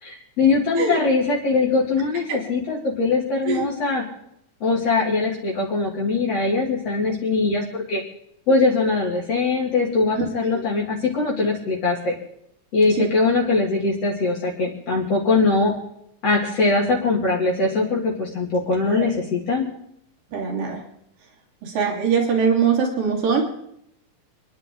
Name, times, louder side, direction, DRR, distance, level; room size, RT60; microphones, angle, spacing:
voice 1, 0.0-4.0 4.6-8.0 8.5-12.1 12.7-15.7 16.2-19.7, left 3 dB, 50° left, -3 dB, 3.7 m, -21 dB
voice 2, 20.3-20.8 21.6-23.4, right 6 dB, 85° right, -1 dB, 4.7 m, -22 dB
28.5 x 11.0 x 3.9 m, 0.74 s
omnidirectional pair, 3.8 m